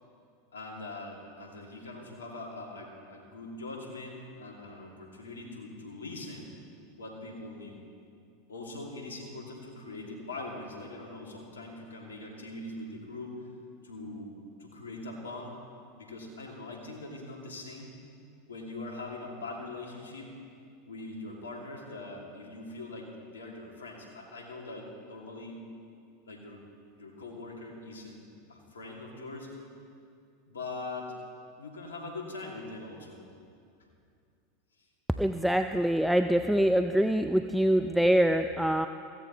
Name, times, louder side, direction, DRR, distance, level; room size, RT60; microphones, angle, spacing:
voice 1, 0.5-6.5 7.0-7.8 8.5-13.5 13.8-15.6 16.0-18.0 18.5-20.3 20.9-25.6 26.3-26.6 26.9-28.2 28.5-29.7 30.5-31.1 31.6-33.3 35.1-35.2, left 2 dB, 85° left, 0 dB, 2.3 m, -42 dB
voice 2, 35.2-38.9, right 1 dB, ahead, 8 dB, 0.4 m, -24 dB
16.5 x 15.5 x 3.0 m, 2.4 s
hypercardioid pair, 90°, 0 cm